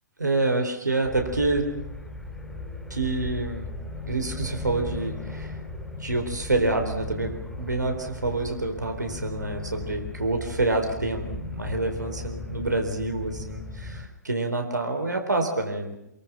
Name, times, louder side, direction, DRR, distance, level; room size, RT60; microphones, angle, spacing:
voice 1, 0.2-1.8 2.9-3.7 4.0-5.5 6.0-15.9, right 2 dB, 80° right, 4 dB, 4.0 m, -27 dB
sound 1, 1.0-14.1, left 2 dB, 5° left, 3.6 m, -37 dB
26.0 x 22.5 x 6.0 m, 0.82 s
figure-of-eight pair, 120°, 10 cm